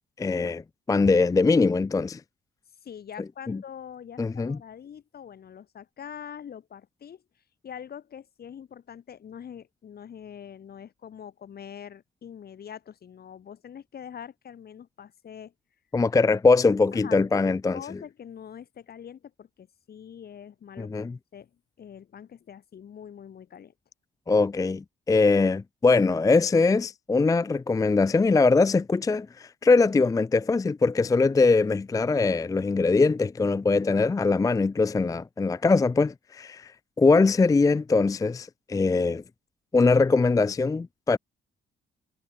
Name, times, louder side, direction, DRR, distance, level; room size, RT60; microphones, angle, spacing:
voice 1, 0.2-0.6 0.9-2.2 3.5-3.6 4.2-4.6 15.9-17.8 20.8-21.2 24.3-39.2 39.7-41.2, left 3 dB, 15° left, 0.5 m, -22 dB
voice 2, 2.8-7.2 7.6-15.5 16.9-21.1 21.3-21.5 21.8-23.7, left 8 dB, 50° left, 1.6 m, -44 dB
cardioid pair, 90°, 20 cm